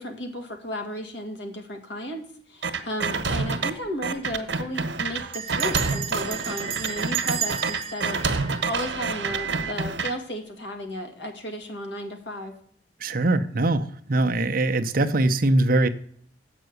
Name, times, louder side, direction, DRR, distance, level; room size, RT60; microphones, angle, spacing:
voice 1, 0.0-12.6, equal, 80° left, 4 dB, 2.1 m, -34 dB
sound 1, 2.6-3.7 4.0-10.1, right 4 dB, 85° right, 1.2 m, -27 dB
Bell, 3.8-3.9 4.2-4.5 5.3-9.4, right 9 dB, 30° right, 1.1 m, -33 dB
voice 2, 13.0-15.9, right 2 dB, 55° right, 8 dB, 0.8 m, -22 dB
7.8 x 6.1 x 7.9 m, 0.62 s
head